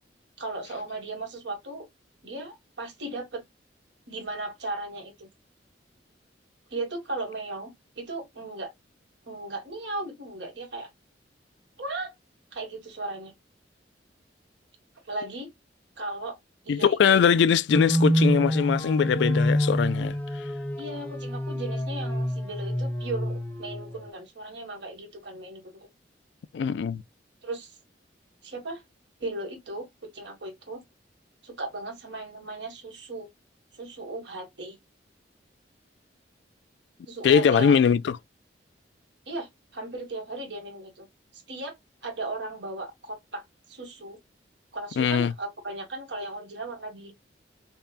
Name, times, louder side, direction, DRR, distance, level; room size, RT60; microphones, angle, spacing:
voice 1, 0.4-1.9 2.2-3.4 4.1-5.3 6.7-8.7 9.3-10.9 11.8-12.1 12.5-13.3 15.1-15.5 16.0-16.4 16.6-17.2 20.8-25.9 27.4-27.8 28.4-28.8 29.2-30.8 31.4-33.3 33.7-34.8 37.1-37.8 39.3-41.1 41.3-41.7 42.0-43.4 43.7-44.2 44.7-47.1, right 2 dB, 75° right, 1.6 m, -36 dB
voice 2, 16.7-20.2 26.5-27.0 37.2-38.2 45.0-45.3, left 7 dB, 70° left, 0.3 m, -21 dB
sound 1, 17.7-23.9, equal, 10° left, 0.8 m, -27 dB
5.4 x 2.3 x 2.4 m
head